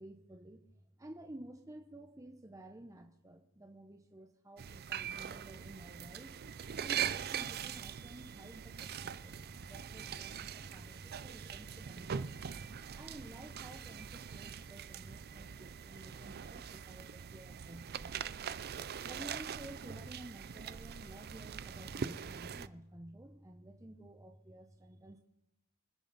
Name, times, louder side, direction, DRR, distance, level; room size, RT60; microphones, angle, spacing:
voice 1, 0.0-6.4 6.8-18.1 19.0-25.2, right 1 dB, 15° right, 4 dB, 0.8 m, -52 dB
sound 1, 4.6-22.7, right 8 dB, 45° right, 0.5 m, -42 dB
25.5 x 10.0 x 4.1 m, 0.88 s
head